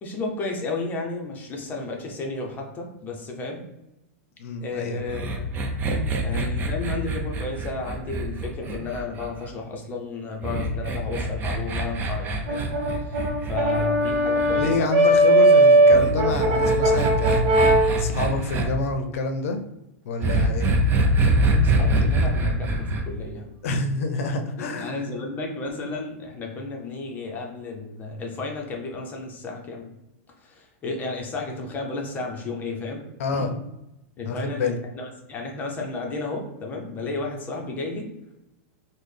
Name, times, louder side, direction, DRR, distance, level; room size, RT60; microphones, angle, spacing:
voice 1, 0.0-3.6 4.6-5.5 6.2-14.9 21.6-23.5 24.6-29.9 30.4-33.0 33.3-33.6 34.2-38.1, left 3 dB, 25° left, 1 dB, 0.6 m, -33 dB
voice 2, 4.4-5.0 14.5-17.6 17.9-19.6 20.1-20.7 23.6-25.0 33.2-33.5 34.2-34.8, left 3 dB, 75° left, 6 dB, 0.5 m, -27 dB
sound 1, 5.1-9.5 10.4-14.6 15.9-18.6 20.2-23.0, right 2 dB, 25° right, 0.5 m, -24 dB
Brass instrument, 12.5-17.9, right 1 dB, 60° right, 0.8 m, -18 dB
3.9 x 2.1 x 3.2 m, 0.91 s
supercardioid pair, 145°, 8 cm